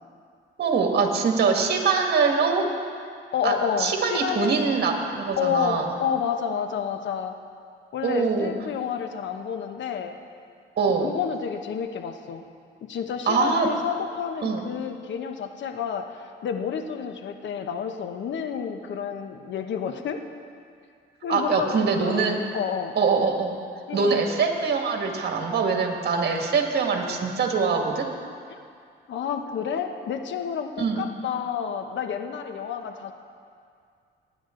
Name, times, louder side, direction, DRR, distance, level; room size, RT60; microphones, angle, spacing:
voice 1, 0.6-2.6 3.4-5.9 8.0-8.5 10.8-11.1 13.3-13.7 14.4-14.6 21.3-22.4 23.0-23.5 23.9-28.1 30.8-31.0, right 5 dB, 55° right, 2 dB, 1.9 m, -23 dB
voice 2, 3.3-4.6 5.4-7.3 7.9-10.2 11.0-12.4 12.8-20.2 21.2-22.3 22.5-22.9 23.9-24.3 29.1-33.1, left 7 dB, 70° left, 6 dB, 1.0 m, -30 dB
20.0 x 9.4 x 3.9 m, 2.3 s
cardioid pair, 90°, 20 cm